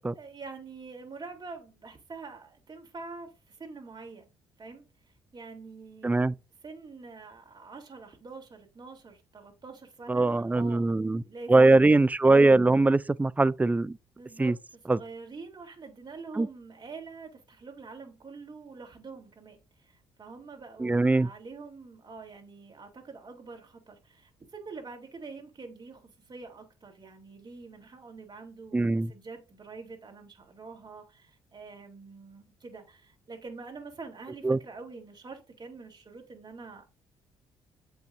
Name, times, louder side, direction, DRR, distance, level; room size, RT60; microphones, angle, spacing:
voice 1, 0.0-4.3 4.6-11.6 14.2-36.9, right 4 dB, 35° right, 2.9 m, -46 dB
voice 2, 6.0-6.3 10.1-11.2 11.5-14.0 14.4-14.5 14.9-15.0 16.4-16.5 20.8-21.3 28.7-29.1 34.4-34.6, right 2 dB, 15° right, 0.4 m, -21 dB
7.8 x 5.6 x 2.7 m
hypercardioid pair, 55°, 12 cm